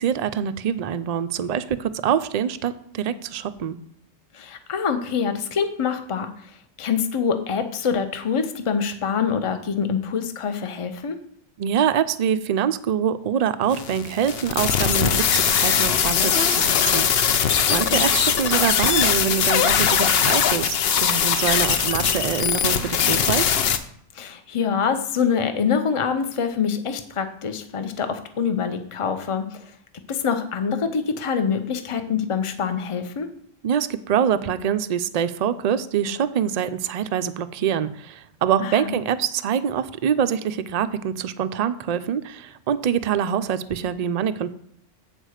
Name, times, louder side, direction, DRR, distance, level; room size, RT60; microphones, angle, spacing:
voice 1, 0.0-3.8 11.6-23.6 33.6-44.5, right 8 dB, 60° right, 12 dB, 0.4 m, -25 dB
voice 2, 4.3-6.3 6.8-11.2 17.7-18.0 24.1-29.6 30.1-33.3 38.6-39.0, left 6 dB, 35° left, 7 dB, 0.6 m, -25 dB
sound 1, 13.7-23.8, left 8 dB, 65° left, 0.8 m, -21 dB
8.1 x 4.4 x 6.4 m, 0.66 s
omnidirectional pair, 1.2 m